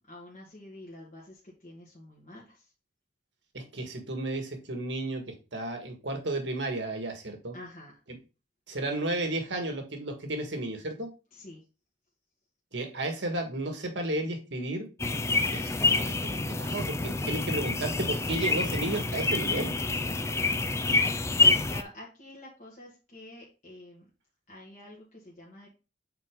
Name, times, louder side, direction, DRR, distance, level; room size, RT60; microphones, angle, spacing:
voice 1, 0.1-2.7 7.5-8.0 11.3-11.6 20.0-20.4 20.9-24.1 24.5-25.7, left 1 dB, 40° left, -4 dB, 1.7 m, -48 dB
voice 2, 3.5-5.2 5.5-7.5 8.7-11.1 12.7-14.9 15.5-19.7, right 2 dB, 80° right, 4 dB, 1.8 m, -33 dB
sound 1, 15.0-21.8, left 3 dB, 15° left, 0.4 m, -27 dB
7.8 x 4.2 x 3.8 m, 0.32 s
head